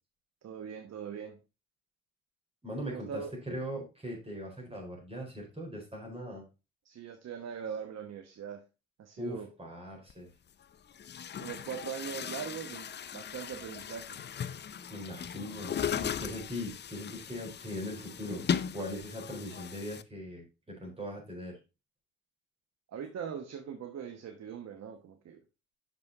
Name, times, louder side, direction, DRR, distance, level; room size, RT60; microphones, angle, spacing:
voice 1, 0.4-1.4 2.9-3.3 6.8-8.6 9.0-9.5 11.4-14.2 22.9-25.4, right 7 dB, 60° right, 6 dB, 1.1 m, -41 dB
voice 2, 2.6-6.5 9.2-10.3 14.9-18.4 18.7-21.6, equal, 20° right, -1 dB, 4.4 m, -40 dB
Chatter / Gurgling / Tap, 10.1-10.2 10.9-20.0, left 8 dB, 35° left, 0.5 m, -38 dB
6.2 x 6.2 x 4.0 m, 0.29 s
cardioid pair, 90°, 30 cm